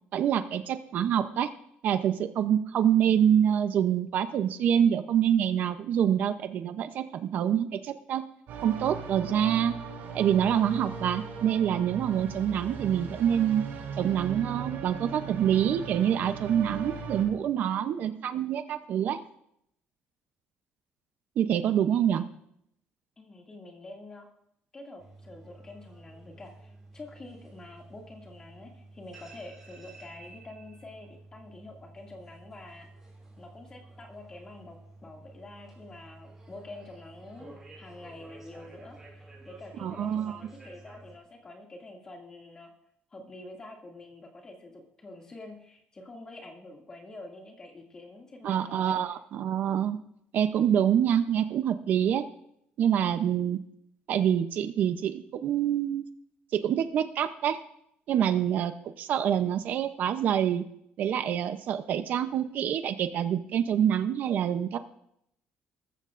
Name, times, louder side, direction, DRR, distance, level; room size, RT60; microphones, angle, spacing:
voice 1, 0.1-1.5 1.8-8.2 8.6-9.8 10.1-13.6 14.0-19.2 21.4-22.3 39.8-40.4 48.4-50.0 50.3-52.3 52.8-53.6 54.1-56.1 56.5-57.6 58.1-58.7 59.0-60.6 61.0-64.8, right 9 dB, 55° right, 9 dB, 0.6 m, -26 dB
sound 1, 8.5-17.2, right 6 dB, 70° right, 5.5 m, -38 dB
voice 2, 23.2-24.3 24.7-32.9 33.4-34.8 35.0-42.7 43.1-49.0, left 2 dB, 20° left, 0 dB, 2.3 m, -47 dB
sound 2, 25.0-41.2, right 2 dB, 10° right, 4.9 m, -51 dB
19.5 x 14.5 x 2.5 m, 0.74 s
cardioid pair, 175°, 4 cm